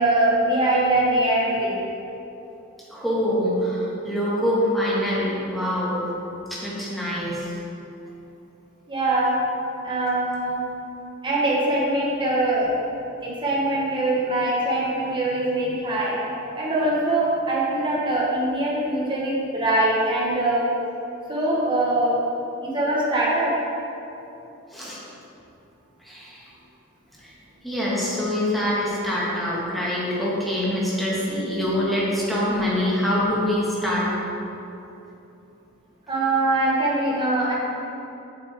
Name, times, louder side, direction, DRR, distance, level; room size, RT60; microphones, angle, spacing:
voice 1, 0.0-1.9 8.9-9.4 9.8-10.6 11.2-12.7 13.2-16.2 16.5-20.7 21.3-22.2 22.6-23.5 36.1-37.5, right 1 dB, 25° right, -5 dB, 1.5 m, -22 dB
voice 2, 2.9-6.1 6.5-7.4 24.7-25.0 26.0-26.4 27.2-27.3 27.6-34.2, equal, ahead, -8 dB, 1.9 m, -24 dB
8.4 x 6.6 x 3.7 m, 2.9 s
head